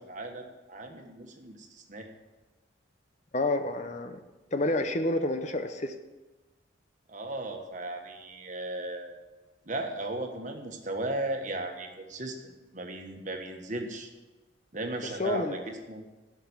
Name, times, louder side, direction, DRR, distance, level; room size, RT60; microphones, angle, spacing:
voice 1, 0.0-2.1 7.1-9.2 9.7-14.1 14.7-16.0, right 2 dB, 40° right, 4 dB, 1.4 m, -36 dB
voice 2, 3.3-4.2 4.5-5.9 15.2-15.5, left 2 dB, 35° left, 8 dB, 0.7 m, -29 dB
12.5 x 6.0 x 8.7 m, 1.2 s
head